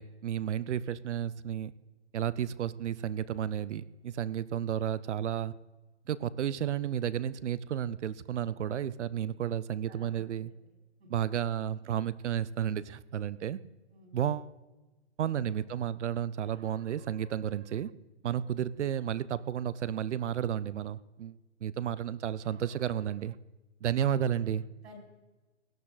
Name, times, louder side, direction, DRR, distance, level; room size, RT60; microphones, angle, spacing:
voice 1, 0.0-1.7 2.1-5.5 6.1-10.5 11.1-13.6 14.1-14.5 15.2-17.9 18.2-23.4 23.8-24.6, right 9 dB, 80° right, 19 dB, 0.7 m, -32 dB
voice 2, 9.9-11.2 13.9-14.2 24.8-25.0, equal, 65° right, 1 dB, 4.9 m, -55 dB
17.5 x 10.5 x 4.1 m, 1.2 s
hypercardioid pair, 165°, 35 cm